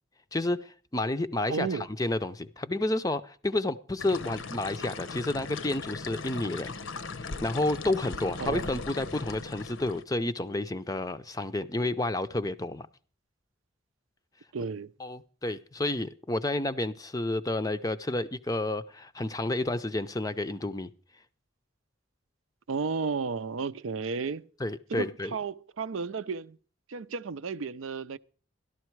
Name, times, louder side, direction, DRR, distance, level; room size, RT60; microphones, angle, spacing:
voice 1, 0.3-6.7 7.2-12.9 15.0-20.9 24.6-25.4, left 2 dB, 15° left, 0.5 m, -30 dB
voice 2, 1.5-1.9 8.4-8.8 14.5-14.9 22.7-24.5 24.9-26.6 26.9-28.2, right 4 dB, 75° right, 0.5 m, -33 dB
sound 1, 4.0-10.0, left 4 dB, 70° left, 0.8 m, -39 dB
13.0 x 12.0 x 4.6 m
head